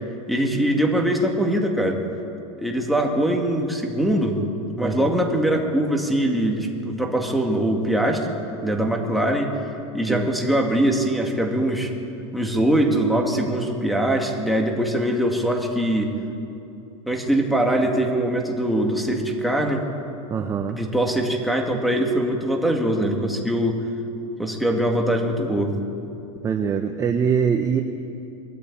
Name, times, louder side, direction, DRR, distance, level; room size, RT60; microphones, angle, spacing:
voice 1, 0.3-2.0 2.6-4.4 4.8-8.3 8.6-9.5 9.9-11.9 12.3-16.1 17.1-19.8 20.7-23.8 24.4-25.7, right 1 dB, ahead, 0 dB, 2.1 m, -22 dB
voice 2, 4.8-5.1 10.1-10.3 20.3-20.8 26.4-27.8, right 7 dB, 20° right, 5 dB, 0.9 m, -23 dB
22.0 x 13.5 x 8.7 m, 2.8 s
supercardioid pair, 140°, 17 cm